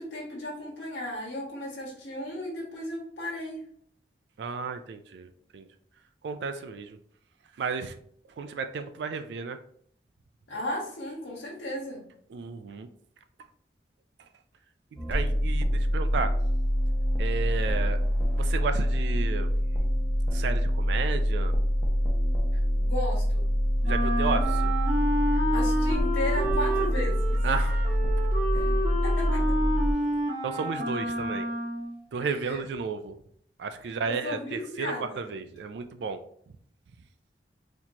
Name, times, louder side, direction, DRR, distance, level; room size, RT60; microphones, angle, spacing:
voice 1, 0.0-3.6 10.5-12.0 22.5-23.5 25.3-27.4 28.5-28.7 29.0-29.6 32.2-32.6 33.8-35.3, left 1 dB, 90° left, -5 dB, 1.5 m, -35 dB
voice 2, 4.4-5.7 6.2-7.0 7.6-7.9 8.4-9.6 12.3-12.9 14.9-16.3 17.2-18.0 18.3-19.5 20.3-21.5 23.8-24.7 27.4-27.8 30.4-31.5 32.1-33.2 33.6-36.2, right 5 dB, 80° right, 9 dB, 0.3 m, -33 dB
sound 1, 15.0-29.9, equal, 10° left, 0.8 m, -25 dB
Wind instrument woodwind instrument, 23.8-32.0, right 1 dB, 40° right, 0.8 m, -30 dB
4.2 x 2.9 x 2.8 m, 0.65 s
head